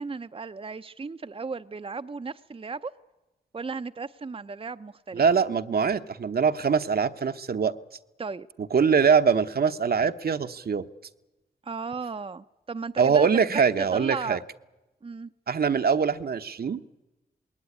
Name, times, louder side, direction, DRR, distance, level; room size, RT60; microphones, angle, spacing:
voice 1, 0.0-2.9 3.5-5.2 8.2-8.5 11.6-13.6 13.9-14.4 15.0-15.3, right 4 dB, 35° right, 0.7 m, -35 dB
voice 2, 5.1-7.8 8.7-10.9 13.0-14.4 15.5-16.8, right 6 dB, 65° right, 1.0 m, -23 dB
20.0 x 18.5 x 9.9 m
cardioid pair, 45°, 17 cm